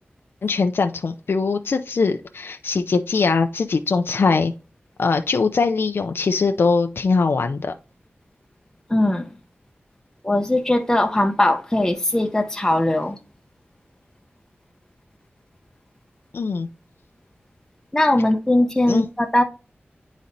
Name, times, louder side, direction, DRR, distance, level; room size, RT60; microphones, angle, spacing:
voice 1, 0.4-4.5 5.0-7.7 16.3-16.7 18.9-19.1, left 4 dB, 70° left, 0.4 m, -21 dB
voice 2, 8.9-9.3 10.2-13.2 17.9-19.4, left 1 dB, 15° left, 0.6 m, -20 dB
9.8 x 4.1 x 2.6 m
wide cardioid pair, 70°, 4 cm